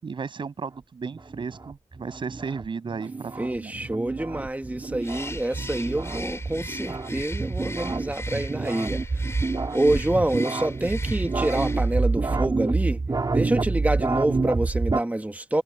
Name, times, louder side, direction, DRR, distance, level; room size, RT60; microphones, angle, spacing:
voice 1, 0.0-3.7 12.3-12.4, right 5 dB, 80° right, 6.8 m, -34 dB
sound 1, 1.1-15.0, right 3 dB, 55° right, 3.0 m, -28 dB
voice 2, 3.4-13.0 13.3-15.6, right 1 dB, 20° right, 1.5 m, -27 dB
Bird, 5.0-12.1, left 2 dB, 35° left, 3.8 m, -40 dB
cardioid pair, 45°, 8 cm